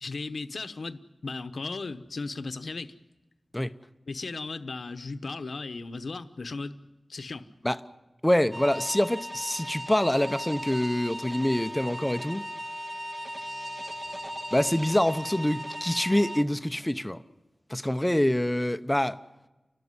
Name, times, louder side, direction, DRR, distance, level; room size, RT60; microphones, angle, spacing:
voice 1, 0.0-2.9 4.1-6.7 7.1-7.5, left 3 dB, 80° left, 1.0 m, -36 dB
voice 2, 8.2-12.4 14.5-17.2 17.7-19.2, left 1 dB, 10° left, 0.8 m, -25 dB
sound 1, 8.5-16.4, equal, 30° right, 1.7 m, -37 dB
29.5 x 13.0 x 9.7 m
wide cardioid pair, 80°, 0 cm